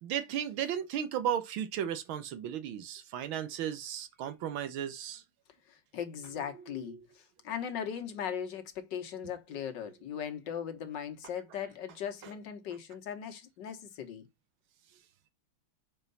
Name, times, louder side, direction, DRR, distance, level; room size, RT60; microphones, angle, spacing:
voice 1, 0.0-5.2 6.9-7.0, right 9 dB, 85° right, 1.6 m, -35 dB
voice 2, 5.7-6.9 7.4-14.2, left 8 dB, 65° left, 1.7 m, -38 dB
5.6 x 4.5 x 3.9 m
omnidirectional pair, 2.2 m